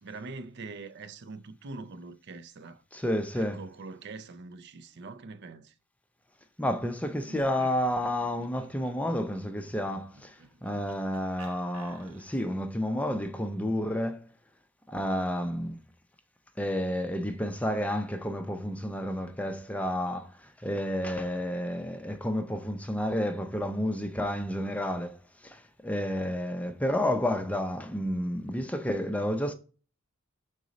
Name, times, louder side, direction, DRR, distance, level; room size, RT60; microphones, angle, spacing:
voice 1, 0.0-2.8 3.3-5.7, right 3 dB, 50° right, 0.5 m, -43 dB
voice 2, 2.9-3.6 6.6-14.3 14.9-15.8 16.6-25.2 25.4-29.5, equal, 5° left, 0.5 m, -30 dB
Laughter, 7.2-12.6, right 3 dB, 85° right, 1.0 m, -53 dB
6.2 x 4.0 x 3.9 m
head